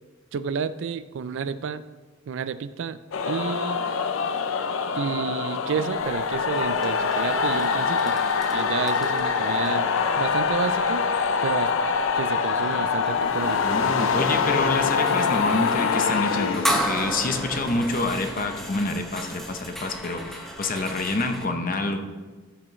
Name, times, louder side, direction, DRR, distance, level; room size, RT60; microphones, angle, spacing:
voice 1, 0.3-1.8 2.3-3.0 3.2-3.8 5.0-8.1 8.5-11.1 11.4-11.8 12.1-13.7, right 6 dB, 60° right, 14 dB, 0.4 m, -30 dB
sound 1, 3.1-17.3, left 5 dB, 65° left, 0.5 m, -24 dB
sound 2, 5.9-21.5, equal, ahead, 1.0 m, -35 dB
voice 2, 13.6-22.0, left 2 dB, 40° left, 6 dB, 0.8 m, -27 dB
13.5 x 6.2 x 3.1 m, 1.3 s
head